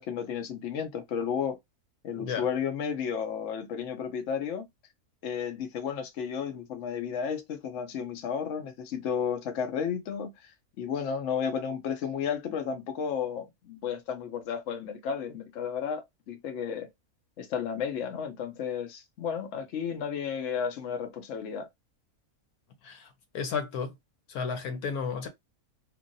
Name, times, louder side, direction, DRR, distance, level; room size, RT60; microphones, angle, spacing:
voice 1, 0.0-1.6 2.0-4.7 5.2-10.5 10.8-16.9 17.4-21.7, left 7 dB, 60° left, 0.9 m, -33 dB
voice 2, 22.8-23.9 24.3-25.3, left 6 dB, 80° left, 1.3 m, -33 dB
3.0 x 2.6 x 2.6 m
omnidirectional pair, 1.5 m